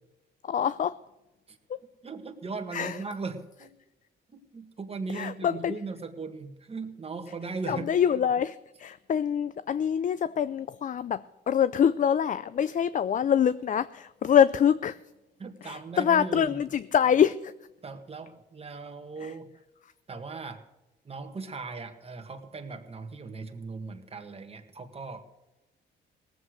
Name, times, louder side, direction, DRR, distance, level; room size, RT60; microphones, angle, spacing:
voice 1, 0.4-1.0 1.7-1.8 2.7-3.0 5.1-5.7 7.7-15.0 15.6-17.5 19.2-19.3, left 8 dB, 40° left, 16 dB, 0.4 m, -25 dB
voice 2, 2.0-3.7 4.3-7.9 15.4-16.6 17.8-19.5 20.1-20.6 21.1-25.3, right 4 dB, 30° right, 6 dB, 1.8 m, -38 dB
18.5 x 8.0 x 6.4 m, 0.99 s
cardioid pair, 90°, 20 cm